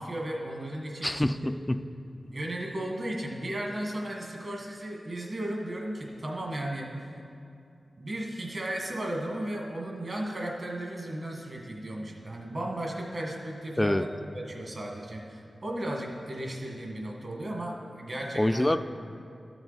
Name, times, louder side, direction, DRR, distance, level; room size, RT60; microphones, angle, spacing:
voice 1, 0.0-1.5 2.3-7.1 8.0-14.1 14.3-18.7, right 1 dB, 50° right, 0 dB, 1.6 m, -35 dB
voice 2, 1.0-1.8 13.8-14.0 18.4-18.8, left 1 dB, 20° left, 11 dB, 0.4 m, -25 dB
12.5 x 7.0 x 4.2 m, 2.5 s
cardioid pair, 55°, 0 cm